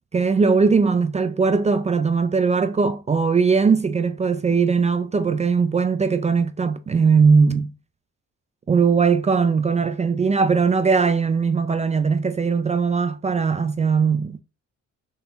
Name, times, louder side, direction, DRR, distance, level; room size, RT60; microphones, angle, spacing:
voice 1, 0.1-7.7 8.7-14.4, right 5 dB, 25° right, 0.3 m, -19 dB
3.8 x 2.9 x 3.9 m
cardioid pair, 90°, 30 cm